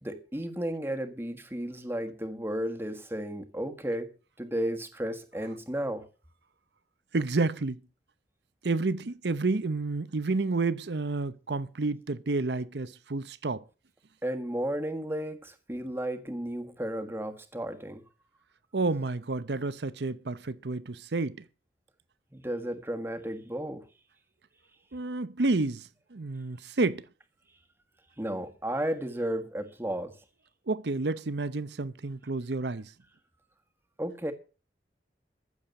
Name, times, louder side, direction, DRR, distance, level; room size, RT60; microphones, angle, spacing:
voice 1, 0.0-6.0 14.2-18.0 22.3-23.9 28.2-30.2 34.0-34.3, right 1 dB, 15° right, 1.5 m, -33 dB
voice 2, 7.1-7.8 8.6-13.6 18.7-21.4 24.9-27.0 30.7-32.9, right 3 dB, 70° right, 0.8 m, -30 dB
14.5 x 7.1 x 7.0 m
head